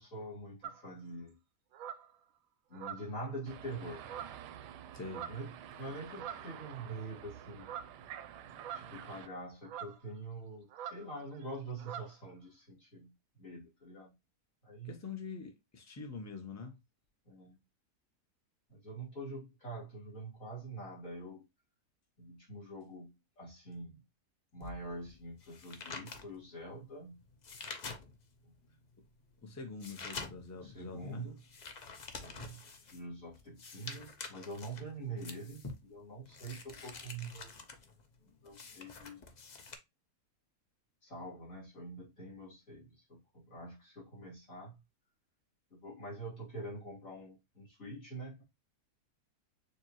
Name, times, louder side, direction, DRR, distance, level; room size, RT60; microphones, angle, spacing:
voice 1, 0.0-1.4 2.7-4.1 5.3-7.7 8.7-13.1 13.4-14.1 14.6-14.9 17.2-17.6 18.7-21.4 22.2-24.0 24.5-27.2 28.4-28.5 30.6-31.4 32.2-37.5 38.4-39.3 41.0-44.8 45.7-48.4, right 2 dB, 55° left, 3.3 m, -45 dB
sound 1, 0.6-0.9 1.7-2.1 2.7-3.3 4.0-4.5 5.0-5.5 6.1-6.6 7.6-8.0 8.6-9.1 9.6-10.0 10.7-11.0 11.3-11.5 11.8-12.1, right 9 dB, 65° right, 0.9 m, -44 dB
sound 2, 3.5-9.3, right 10 dB, 90° right, 1.2 m, -49 dB
voice 2, 4.9-5.3 14.8-16.8 29.4-31.3, left 4 dB, 15° left, 0.5 m, -44 dB
sound 3, 24.6-28.5 28.9-39.8, left 4 dB, 85° left, 0.3 m, -48 dB
6.8 x 2.6 x 3.0 m
omnidirectional pair, 1.7 m